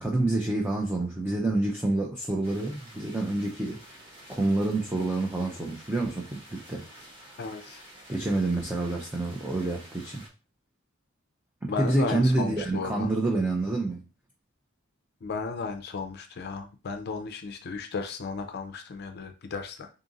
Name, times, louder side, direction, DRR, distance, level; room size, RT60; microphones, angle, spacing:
voice 1, 0.0-3.8 4.3-6.8 8.1-10.2 11.6-14.1, right 2 dB, 10° right, 0.4 m, -28 dB
sound 1, 2.4-10.3, equal, 25° right, 1.2 m, -50 dB
voice 2, 7.4-7.8 11.7-13.1 15.2-19.9, left 4 dB, 50° left, 0.4 m, -34 dB
3.8 x 2.5 x 3.8 m
head